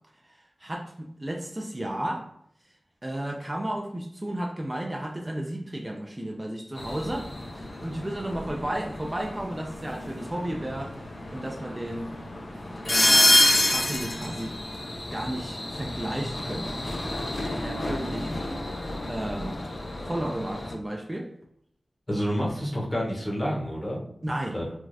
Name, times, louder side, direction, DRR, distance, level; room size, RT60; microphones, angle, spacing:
voice 1, 0.3-2.3 3.0-11.0 11.3-12.1 12.8-14.8 15.1-18.6 19.1-19.5 20.0-21.3 24.2-24.6, right 1 dB, 25° right, 0 dB, 0.4 m, -33 dB
sound 1, 6.8-20.7, left 1 dB, 40° left, 0.4 m, -28 dB
voice 2, 22.1-24.0 24.5-24.7, equal, 25° left, -3 dB, 0.9 m, -28 dB
3.2 x 2.3 x 2.6 m, 0.71 s
wide cardioid pair, 75°, 0 cm